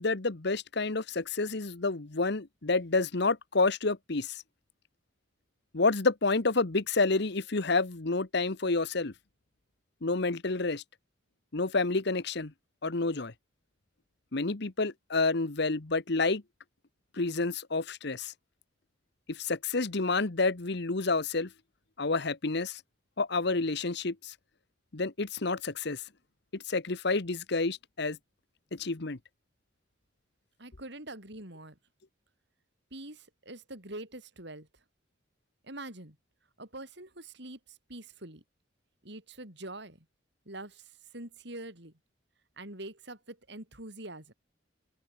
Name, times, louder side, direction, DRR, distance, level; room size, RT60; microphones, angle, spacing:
voice 1, 0.0-4.4 5.7-9.1 10.0-10.8 11.5-12.5 12.8-13.3 14.3-16.4 17.2-18.3 19.3-21.5 22.0-22.8 23.2-24.3 24.9-26.0 26.7-28.2 28.7-29.2, left 3 dB, 60° left, 1.2 m, -29 dB
voice 2, 30.6-31.8 32.9-34.7 35.6-36.2 36.6-38.4 39.0-40.1 40.5-41.9 42.6-44.3, right 2 dB, 60° right, 7.9 m, -44 dB
open air
head